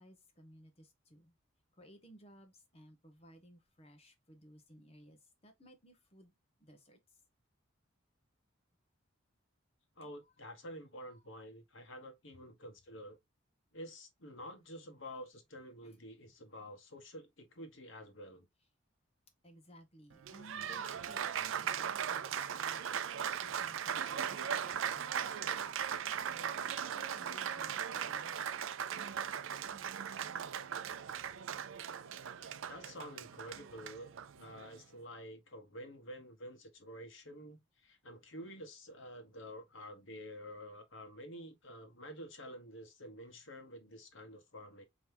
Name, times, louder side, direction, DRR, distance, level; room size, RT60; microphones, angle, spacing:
voice 1, 0.0-1.3 1.8-6.3 6.6-7.0 10.0-10.1 11.0-11.3 15.8-15.9 19.4-22.8 23.1-28.6 29.7-29.9, right 1 dB, 30° left, 1.1 m, -59 dB
voice 2, 10.0-13.2 13.7-18.5 32.4-44.8, equal, 70° left, 1.3 m, -49 dB
Applause, 20.1-34.8, right 8 dB, 70° right, 0.4 m, -38 dB
4.4 x 3.1 x 3.4 m
head